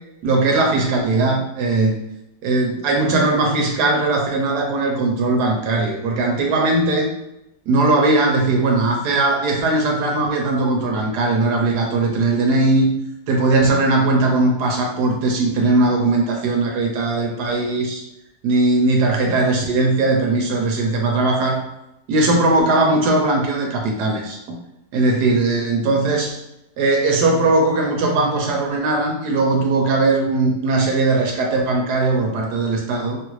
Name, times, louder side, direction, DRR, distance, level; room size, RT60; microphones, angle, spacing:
voice 1, 0.2-2.0 2.4-7.1 7.7-13.0 13.3-18.0 18.4-21.7 22.1-24.6 24.9-26.3 26.8-33.2, right 2 dB, 70° right, 0 dB, 1.1 m, -19 dB
3.0 x 2.4 x 3.0 m, 0.87 s
omnidirectional pair, 1.9 m